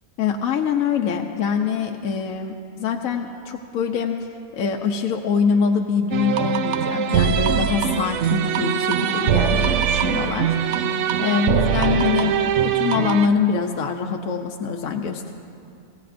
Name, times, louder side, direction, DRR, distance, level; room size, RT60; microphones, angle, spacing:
voice 1, 0.2-2.5 2.8-15.3, left 6 dB, 65° left, 2 dB, 1.1 m, -24 dB
sound 1, 6.1-13.3, right 8 dB, 65° right, 0.8 m, -22 dB
24.5 x 16.5 x 2.5 m, 2.5 s
omnidirectional pair, 1.6 m